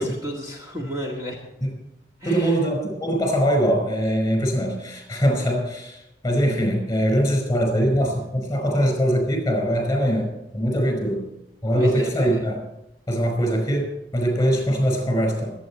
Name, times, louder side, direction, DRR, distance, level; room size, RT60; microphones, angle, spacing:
voice 1, 0.0-1.4 2.2-2.6 11.7-12.4, equal, 20° right, -2 dB, 2.0 m, -32 dB
voice 2, 2.2-11.2 11.6-12.6 13.1-15.5, equal, 20° left, 3 dB, 5.2 m, -22 dB
23.5 x 9.2 x 4.4 m, 0.88 s
head